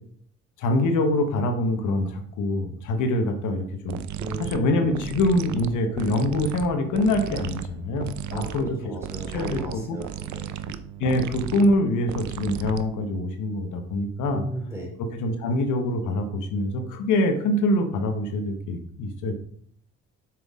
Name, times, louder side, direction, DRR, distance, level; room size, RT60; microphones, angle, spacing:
voice 1, 0.6-4.0 4.4-8.7 9.3-10.0 11.0-14.4 15.1-19.3, left 1 dB, 85° left, 5 dB, 1.2 m, -24 dB
sound 1, 3.9-13.2, right 10 dB, 70° right, 0.6 m, -35 dB
voice 2, 4.2-4.7 5.8-5.9 8.3-10.6 14.3-15.0, right 1 dB, 10° right, -1 dB, 3.0 m, -36 dB
7.6 x 6.1 x 3.6 m, 0.63 s
cardioid pair, 90°, 30 cm